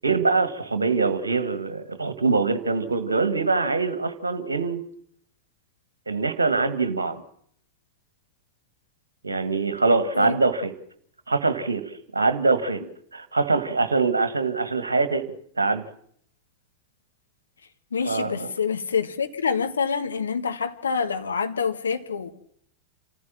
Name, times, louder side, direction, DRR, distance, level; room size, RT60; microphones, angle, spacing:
voice 1, 0.0-4.8 6.1-7.2 9.2-10.7 11.3-11.8 12.1-12.8 13.1-15.8 18.0-18.5, right 4 dB, 75° right, 1.5 m, -23 dB
voice 2, 17.9-22.3, left 6 dB, 70° left, 1.5 m, -26 dB
27.5 x 14.5 x 7.4 m
figure-of-eight pair, 90°, 0 cm